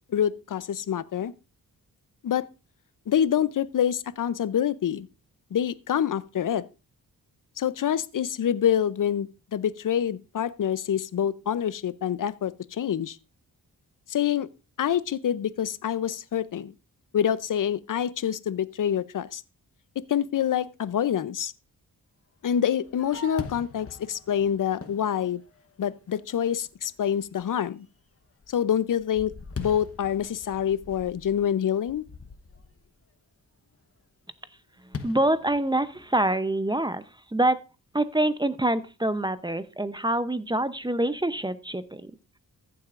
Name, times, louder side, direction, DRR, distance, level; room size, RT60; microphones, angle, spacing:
voice 1, 0.1-1.3 2.2-2.5 3.1-5.1 5.5-6.6 7.6-13.2 14.1-14.5 14.8-16.7 17.1-19.4 20.0-21.5 22.4-25.4 25.8-27.9 28.5-29.3 29.6-32.0, left 9 dB, 55° left, 0.6 m, -26 dB
Fireworks, 22.5-26.0 26.6-26.7 27.2-27.6 28.0-32.9 34.9-36.3, left 4 dB, 40° left, 1.1 m, -42 dB
voice 2, 35.0-37.0 37.3-37.6 37.9-42.1, right 1 dB, 10° right, 0.6 m, -25 dB
14.5 x 7.7 x 2.5 m
cardioid pair, 70°, 37 cm